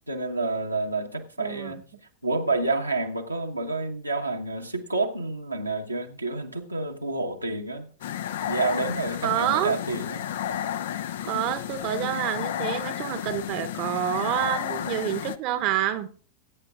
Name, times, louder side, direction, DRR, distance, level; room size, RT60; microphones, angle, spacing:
voice 1, 0.1-1.8 2.2-7.9 8.5-10.3, right 3 dB, 85° right, 1.2 m, -29 dB
voice 2, 1.4-1.7 9.2-9.8 11.2-16.2, right 11 dB, 40° right, 0.9 m, -28 dB
sound 1, 8.0-15.4, left 10 dB, 60° left, 0.5 m, -32 dB
21.5 x 9.0 x 2.4 m
figure-of-eight pair, 90°, 0 cm